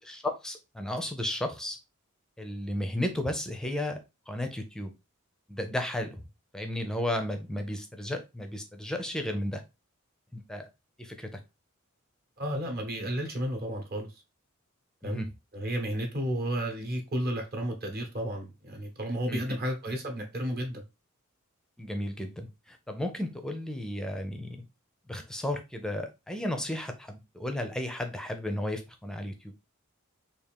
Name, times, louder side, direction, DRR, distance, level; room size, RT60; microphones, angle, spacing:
voice 1, 0.1-1.8 2.4-4.0 4.3-4.9 5.5-6.2 6.5-9.6 10.3-10.7 11.0-11.4 15.0-15.3 19.3-19.4 21.8-24.6 25.1-29.5, left 1 dB, 5° left, 0.5 m, -34 dB
voice 2, 12.4-14.1 15.0-15.2 15.5-20.8, equal, 45° right, 1.0 m, -32 dB
3.6 x 2.4 x 3.5 m
head